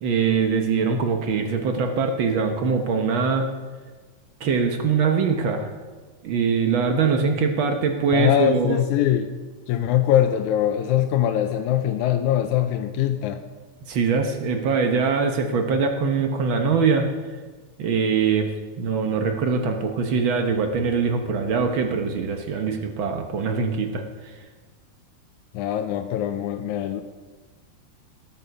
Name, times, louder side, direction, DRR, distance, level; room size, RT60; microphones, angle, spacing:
voice 1, 0.0-3.5 4.4-5.7 6.2-8.8 13.9-17.1 17.8-18.5 18.8-24.4, right 5 dB, 75° right, 4 dB, 1.1 m, -23 dB
voice 2, 8.1-9.3 9.7-13.4 25.5-27.0, left 11 dB, 80° left, 6 dB, 2.0 m, -22 dB
18.5 x 7.0 x 5.3 m, 1.4 s
omnidirectional pair, 3.5 m